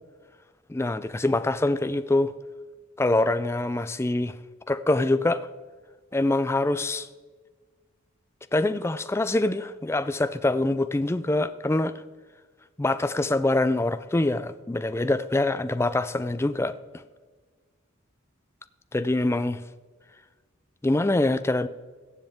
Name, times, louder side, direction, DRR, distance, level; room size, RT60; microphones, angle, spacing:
voice 1, 0.7-2.3 3.0-4.3 4.7-5.5 6.1-7.1 8.5-11.9 12.8-17.0 18.9-19.6 20.8-21.7, left 2 dB, 10° left, 0.4 m, -24 dB
22.0 x 7.8 x 3.6 m
head